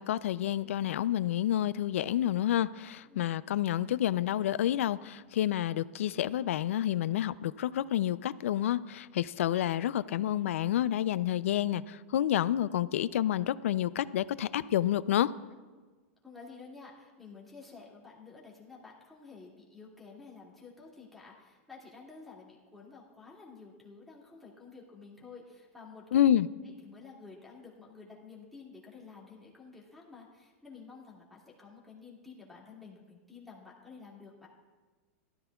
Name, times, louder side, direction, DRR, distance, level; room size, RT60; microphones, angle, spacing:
voice 1, 0.0-15.3 26.1-26.5, left 11 dB, 85° left, 17 dB, 0.4 m, -29 dB
voice 2, 16.2-26.3 26.6-34.5, left 4 dB, ahead, -6 dB, 2.1 m, -51 dB
16.0 x 13.0 x 2.3 m, 1.3 s
supercardioid pair, 150°, 7 cm